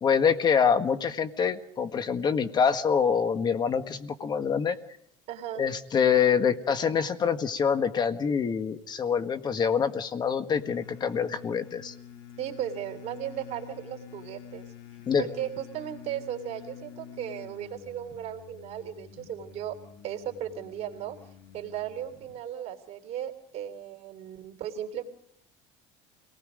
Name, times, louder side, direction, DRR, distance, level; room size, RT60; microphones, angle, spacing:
voice 1, 0.0-4.8 5.6-11.9 15.0-15.3, left 7 dB, 30° left, 10 dB, 1.6 m, -25 dB
voice 2, 5.3-5.6 12.4-14.6 15.2-19.7 20.0-21.1 21.5-25.0, right 10 dB, 55° right, 5 dB, 3.3 m, -36 dB
sound 1, 10.5-22.4, left 9 dB, 85° left, 2.4 m, -48 dB
28.5 x 19.5 x 5.1 m, 0.70 s
cardioid pair, 120°, 13 cm